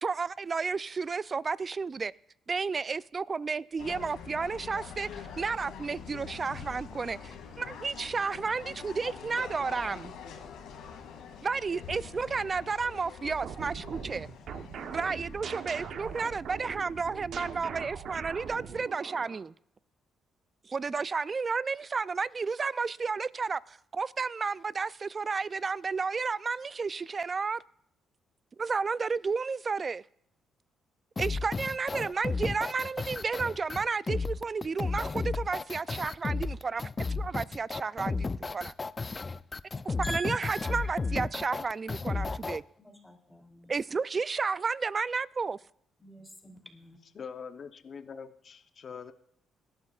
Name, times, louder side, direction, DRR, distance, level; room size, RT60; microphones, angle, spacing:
voice 1, 0.0-2.1 2.5-5.1 5.4-10.1 11.4-14.3 14.9-19.5 20.6-27.6 28.6-30.0 31.2-36.9 37.2-38.7 39.8-42.6 43.7-45.6, right 5 dB, 35° right, 0.4 m, -32 dB
sound 1, 3.8-17.2, left 6 dB, 90° left, 2.3 m, -45 dB
sound 2, 13.2-19.4, right 7 dB, 70° right, 1.0 m, -41 dB
sound 3, 31.2-42.6, left 4 dB, 30° left, 0.4 m, -33 dB
voice 2, 40.0-41.0 42.8-43.7 46.0-47.0, right 2 dB, 10° left, 2.9 m, -43 dB
voice 3, 47.1-49.1, left 6 dB, 50° left, 0.7 m, -43 dB
21.0 x 11.5 x 2.4 m
cardioid pair, 90°, 0 cm